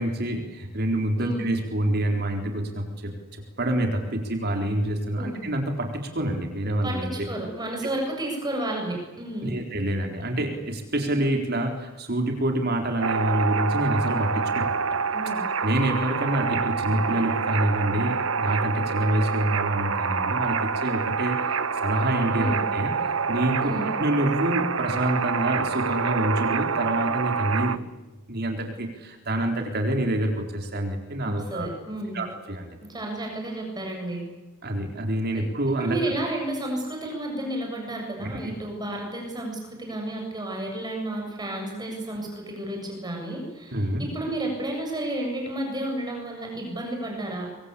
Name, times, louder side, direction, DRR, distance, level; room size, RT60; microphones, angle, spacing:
voice 1, 0.0-7.1 9.4-14.9 15.6-21.6 21.8-22.9 23.3-27.8 28.3-31.7 32.1-32.8 34.6-36.0 38.2-38.5 43.7-44.0, right 1 dB, 50° right, 3 dB, 4.1 m, -27 dB
voice 2, 6.8-9.5 15.1-15.5 22.4-22.6 23.6-23.9 31.2-32.2 32.9-34.2 35.3-35.5 35.8-47.5, right 1 dB, 20° right, 1 dB, 7.3 m, -32 dB
sound 1, 13.0-27.8, right 5 dB, 70° right, 1.2 m, -27 dB
25.5 x 24.0 x 8.4 m, 1.2 s
head